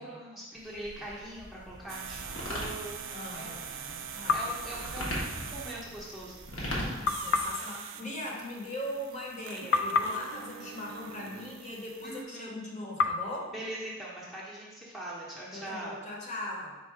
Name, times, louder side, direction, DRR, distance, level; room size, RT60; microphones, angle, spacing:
voice 1, 0.0-3.6 4.3-7.0 12.0-12.5 13.5-16.0, right 1 dB, ahead, -7 dB, 0.7 m, -42 dB
sound 1, 0.5-7.5, equal, 80° left, 1.2 m, -39 dB
sound 2, 1.9-12.2, right 8 dB, 70° right, 0.3 m, -44 dB
voice 2, 3.1-5.0 6.8-13.6 15.5-16.7, left 1 dB, 35° left, -3 dB, 0.9 m, -40 dB
sound 3, 4.3-5.6 7.0-9.4 9.7-12.0 13.0-14.8, left 4 dB, 60° left, 0.3 m, -34 dB
4.6 x 2.5 x 4.5 m, 1.3 s
head